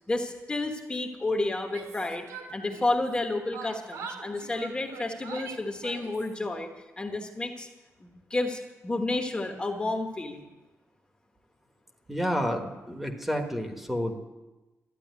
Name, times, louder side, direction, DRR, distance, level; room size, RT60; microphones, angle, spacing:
voice 1, 0.1-2.2 2.5-6.7 7.0-7.7 8.0-10.4, left 2 dB, 20° left, 3 dB, 1.2 m, -31 dB
Yell, 1.6-3.2 3.5-6.3, right 5 dB, 90° right, 2.1 m, -43 dB
voice 2, 12.1-14.2, equal, 5° right, 4 dB, 1.2 m, -30 dB
12.5 x 10.0 x 9.3 m, 1.1 s
wide cardioid pair, 180°, 5 cm